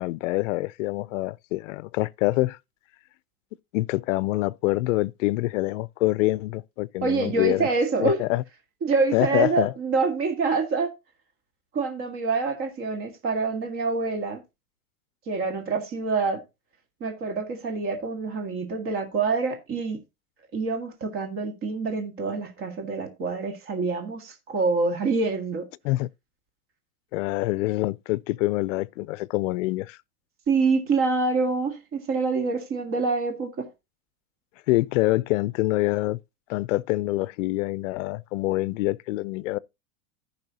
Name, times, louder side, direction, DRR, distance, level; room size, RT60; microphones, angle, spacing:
voice 1, 0.0-2.6 3.7-7.7 8.0-8.4 9.1-9.7 25.8-26.1 27.1-30.0 34.7-36.2 36.5-39.6, left 19 dB, 65° left, 0.5 m, -25 dB
voice 2, 7.0-8.2 8.8-10.9 11.7-14.4 15.3-16.4 17.0-20.0 20.5-25.7 30.5-33.7, right 4 dB, 30° right, 1.8 m, -26 dB
14.5 x 5.5 x 2.8 m
supercardioid pair, 150°, 42 cm